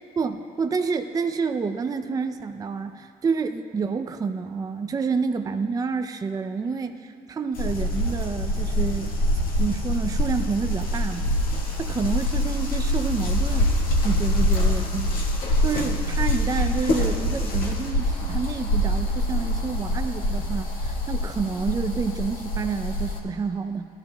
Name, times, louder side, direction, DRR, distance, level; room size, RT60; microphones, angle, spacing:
voice 1, 0.2-9.1 9.6-11.3 11.8-13.7 14.0-23.9, right 5 dB, 20° right, 7 dB, 0.4 m, -29 dB
sound 1, 7.5-23.2, left 1 dB, 60° left, 1.6 m, -25 dB
17.5 x 12.5 x 2.2 m, 2.3 s
cardioid pair, 110°, 17 cm